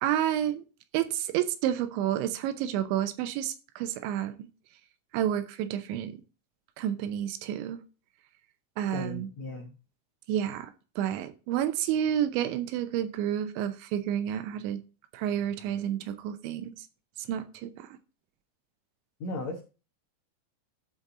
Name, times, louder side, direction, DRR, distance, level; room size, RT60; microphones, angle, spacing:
voice 1, 0.0-0.6 0.9-4.5 5.1-6.1 6.8-7.8 8.8-9.3 10.3-14.8 15.1-16.7 17.3-17.9, right 10 dB, 80° right, 3.0 m, -30 dB
voice 2, 8.9-9.7 19.2-19.6, left 2 dB, 90° left, 1.5 m, -36 dB
14.5 x 5.2 x 3.8 m
omnidirectional pair, 5.4 m